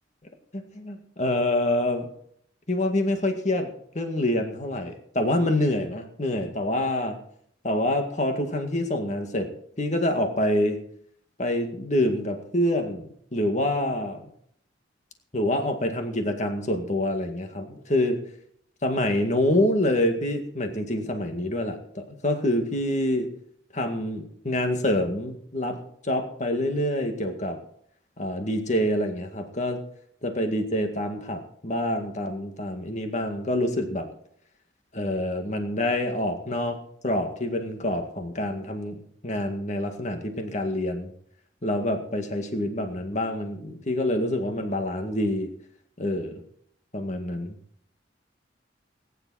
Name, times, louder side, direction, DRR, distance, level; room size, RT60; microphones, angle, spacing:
voice 1, 0.5-2.1 2.7-7.2 7.6-9.5 9.8-10.8 11.4-13.1 13.3-14.2 15.3-18.2 18.8-23.3 23.7-27.6 28.2-29.8 30.2-34.1 34.9-39.0 39.2-41.1 41.6-45.5 46.0-46.4 46.9-47.6, left 1 dB, 40° left, 5 dB, 2.0 m, -26 dB
20.5 x 10.5 x 4.3 m, 0.65 s
head